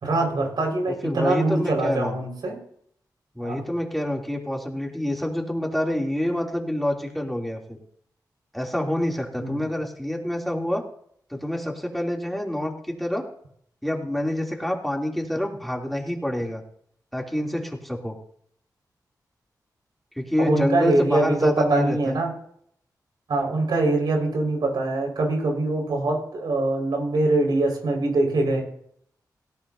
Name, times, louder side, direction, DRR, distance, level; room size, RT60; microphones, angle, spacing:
voice 1, 0.0-2.6 3.4-3.6 9.4-9.7 20.4-22.3 23.3-28.6, right 2 dB, 85° right, 1 dB, 5.0 m, -23 dB
voice 2, 1.0-2.2 3.3-7.8 8.5-10.8 11.3-13.3 13.8-16.6 17.1-18.1 20.2-22.1, left 1 dB, ahead, -1 dB, 3.0 m, -27 dB
17.5 x 17.0 x 2.8 m, 0.66 s
cardioid pair, 60°, 7 cm